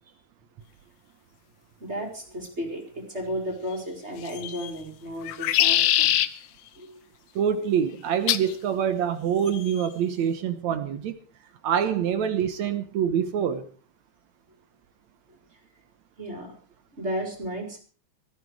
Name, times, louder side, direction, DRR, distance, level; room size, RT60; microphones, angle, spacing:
voice 1, 1.8-2.8 3.1-6.2 6.8-6.9 16.2-16.5 17.0-17.8, equal, 20° right, 2 dB, 5.1 m, -33 dB
sound 1, 4.2-4.7 5.2-6.3 8.3-8.5 9.5-9.9, left 13 dB, 75° left, 2.2 m, -23 dB
voice 2, 7.4-11.2 11.6-13.6, right 8 dB, 70° right, 9 dB, 2.4 m, -25 dB
18.0 x 15.0 x 4.9 m, 0.41 s
omnidirectional pair, 3.4 m